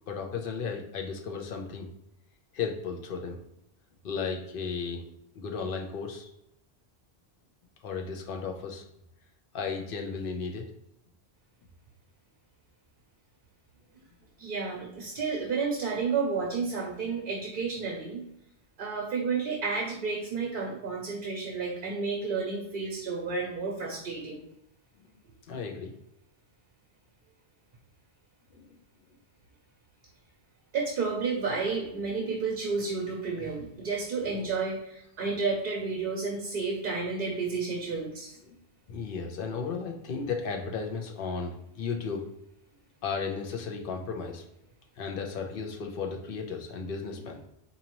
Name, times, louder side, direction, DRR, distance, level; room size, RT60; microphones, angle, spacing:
voice 1, 0.1-1.9 2.5-3.4 4.0-5.0 5.3-6.3 7.8-8.8 9.5-10.6 25.5-26.0 28.5-28.8 38.4-38.6 38.9-42.3 43.0-44.4 45.0-47.4, left 5 dB, 65° left, 3 dB, 0.8 m, -34 dB
voice 2, 14.4-18.2 18.8-24.4 30.7-38.4, right 4 dB, 60° right, 0 dB, 0.8 m, -31 dB
4.0 x 2.7 x 2.9 m, 0.81 s
omnidirectional pair, 1.0 m